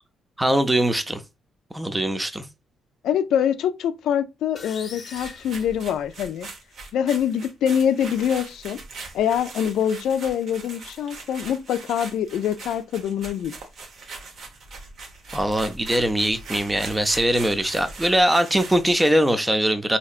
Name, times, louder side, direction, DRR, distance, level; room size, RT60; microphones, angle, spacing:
voice 1, 0.4-1.2 1.7-2.5 15.3-20.0, right 1 dB, 10° right, 0.5 m, -21 dB
voice 2, 3.0-6.5 6.9-8.8 9.1-13.5, left 9 dB, 80° left, 0.4 m, -24 dB
sound 1, 4.6-6.5, left 4 dB, 40° left, 0.8 m, -42 dB
sound 2, 5.0-19.2, right 3 dB, 65° right, 1.0 m, -40 dB
4.2 x 2.8 x 2.4 m
cardioid pair, 90°, 0 cm